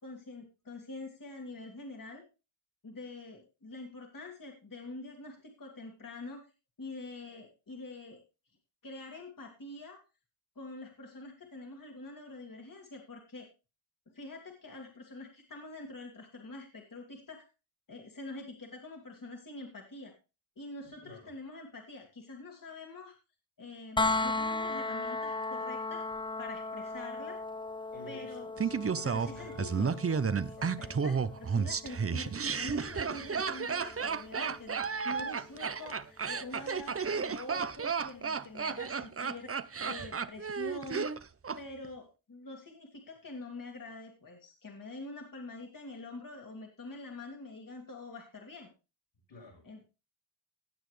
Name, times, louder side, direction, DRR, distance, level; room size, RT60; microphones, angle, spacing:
voice 1, 0.0-2.2 2.8-6.4 6.8-8.2 8.8-10.0 10.6-13.5 14.1-17.5 17.9-20.1 20.6-23.1 23.6-27.4 28.1-30.0 30.8-39.6 39.8-41.1 41.6-48.7 49.6-49.9, left 2 dB, 40° left, 1 dB, 2.3 m, -45 dB
voice 2, 20.8-21.3 27.9-31.0 49.3-49.6, left 3 dB, 75° left, -1 dB, 6.0 m, -52 dB
sound 1, 24.0-35.8 37.7-37.8, left 3 dB, 10° left, 0.4 m, -37 dB
Laughter, 28.6-41.6 41.8-41.9, right 6 dB, 30° right, 0.6 m, -32 dB
16.5 x 7.3 x 3.3 m, 0.31 s
cardioid pair, 70°, 48 cm